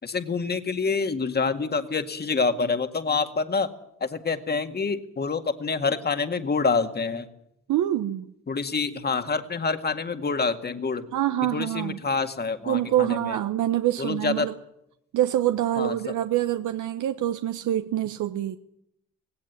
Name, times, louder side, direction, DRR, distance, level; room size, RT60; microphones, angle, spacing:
voice 1, 0.0-3.7 4.0-7.3 8.5-11.1 11.4-13.4 14.0-14.5 15.8-16.1, left 4 dB, 35° left, 8 dB, 2.0 m, -27 dB
voice 2, 7.7-8.3 11.1-12.0 12.7-14.5 15.1-18.6, right 12 dB, 80° right, 8 dB, 1.1 m, -25 dB
17.5 x 17.5 x 9.8 m, 0.78 s
cardioid pair, 90°, 30 cm